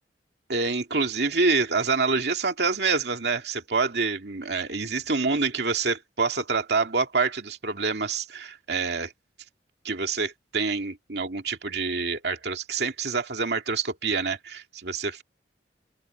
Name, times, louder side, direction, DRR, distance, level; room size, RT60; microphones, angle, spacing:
voice 1, 0.5-9.1 9.8-15.2, right 4 dB, 65° right, 2.4 m, -26 dB
open air
head